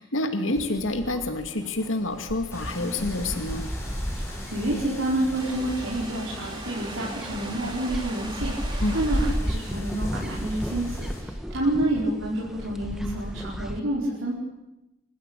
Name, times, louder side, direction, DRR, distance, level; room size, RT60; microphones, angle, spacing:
voice 1, 0.0-3.6 8.8-9.0, left 2 dB, 85° left, 6 dB, 2.3 m, -28 dB
sound 1, 0.6-13.8, equal, 5° right, 1.5 m, -34 dB
sound 2, 2.5-11.2, left 1 dB, 15° left, 5.6 m, -42 dB
voice 2, 4.2-14.3, right 1 dB, 85° right, -4 dB, 5.5 m, -29 dB
sound 3, 5.3-9.5, right 2 dB, 25° right, 3.0 m, -39 dB
27.5 x 15.0 x 9.2 m, 0.95 s
head